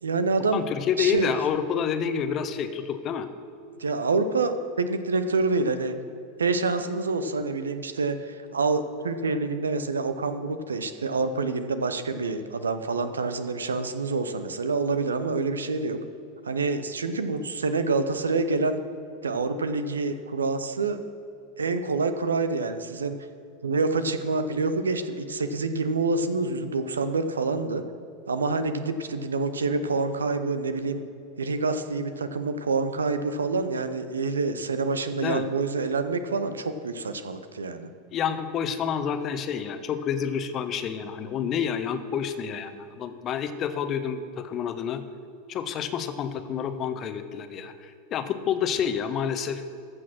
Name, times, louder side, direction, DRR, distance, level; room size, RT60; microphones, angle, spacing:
voice 1, 0.0-0.6 1.0-1.3 3.8-5.9 6.4-16.0 16.4-18.8 19.2-21.0 21.6-23.2 23.6-27.8 28.3-31.0 31.4-37.9, right 3 dB, 75° right, 10 dB, 0.7 m, -27 dB
voice 2, 0.5-3.3 35.2-35.4 38.1-45.0 45.5-49.6, left 8 dB, 35° left, 10 dB, 0.9 m, -29 dB
14.5 x 6.3 x 6.1 m, 2.5 s
figure-of-eight pair, 85°, 0 cm